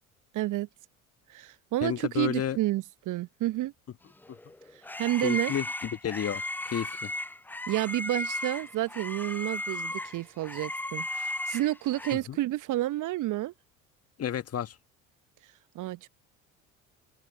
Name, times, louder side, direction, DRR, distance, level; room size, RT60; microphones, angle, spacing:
voice 1, 0.3-0.7 1.3-3.7 5.0-5.5 7.7-13.5 15.7-16.1, right 15 dB, 45° right, 1.0 m, -30 dB
voice 2, 1.8-2.6 5.2-5.6 6.0-7.1 12.3-12.4 14.2-14.7, left 9 dB, 35° left, 1.6 m, -31 dB
sound 1, 4.2-12.1, left 1 dB, 5° left, 0.6 m, -35 dB
figure-of-eight pair, 60°, 42 cm